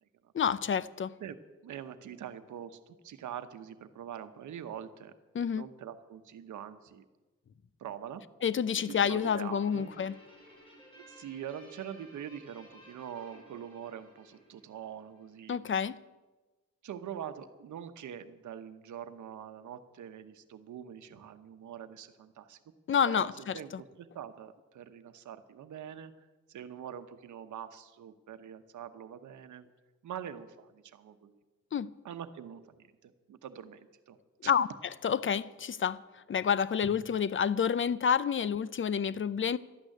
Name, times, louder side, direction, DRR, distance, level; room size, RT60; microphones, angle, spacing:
voice 1, 0.3-1.1 5.3-5.7 8.4-10.1 15.5-16.0 22.9-23.5 31.7-31.9 34.5-34.7 35.0-36.0 36.3-39.6, left 7 dB, 45° left, 0.6 m, -29 dB
voice 2, 1.6-5.1 5.5-7.1 7.8-8.2 8.9-9.9 11.0-15.6 16.8-22.6 23.0-26.1 26.5-29.7 30.0-31.4 32.0-34.5, right 9 dB, 90° right, 1.0 m, -44 dB
Guitar, 8.7-15.4, equal, 20° left, 5.6 m, -56 dB
12.5 x 9.1 x 9.8 m
cardioid pair, 95°, 29 cm